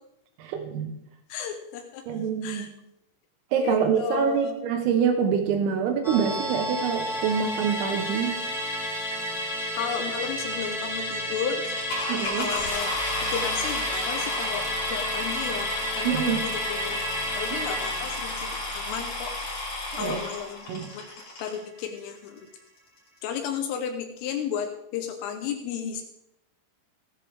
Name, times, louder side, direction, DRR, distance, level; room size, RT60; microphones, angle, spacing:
voice 1, 0.4-1.0 2.1-2.7 3.5-8.4 12.1-12.5 16.1-16.4 17.5-17.6 20.0-20.2 20.7-20.9, right 7 dB, 85° right, 5 dB, 3.8 m, -26 dB
voice 2, 1.3-2.7 3.6-4.5 9.8-11.7 12.4-13.0 13.3-17.1 17.4-19.7 20.0-20.7 20.9-21.1 21.4-22.5 23.2-26.0, left 7 dB, 80° left, 5 dB, 3.5 m, -33 dB
Musical instrument, 6.0-20.7 21.0-21.1, equal, ahead, 0.9 m, -32 dB
sound 1, 11.6-21.6 22.4-22.5 23.0-23.1 23.3-23.6, left 2 dB, 40° left, 5.6 m, -33 dB
16.5 x 10.5 x 3.6 m, 0.80 s
omnidirectional pair, 5.9 m